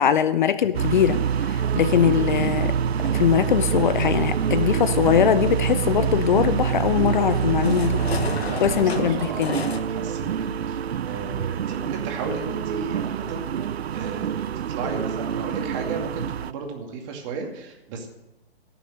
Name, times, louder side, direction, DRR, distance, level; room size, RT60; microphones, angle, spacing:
voice 1, 0.0-2.8 3.1-8.0 8.6-9.6, left 9 dB, 50° left, 13 dB, 0.7 m, -21 dB
sound 1, 0.7-16.5, right 8 dB, 80° right, 0.5 m, -26 dB
sound 2, 3.0-9.8, left 5 dB, 80° left, 1.3 m, -36 dB
voice 2, 8.4-13.6 13.9-14.4 14.7-18.1, right 4 dB, 30° right, 2 dB, 2.4 m, -34 dB
18.0 x 7.0 x 6.4 m, 0.96 s
hypercardioid pair, 140°, 31 cm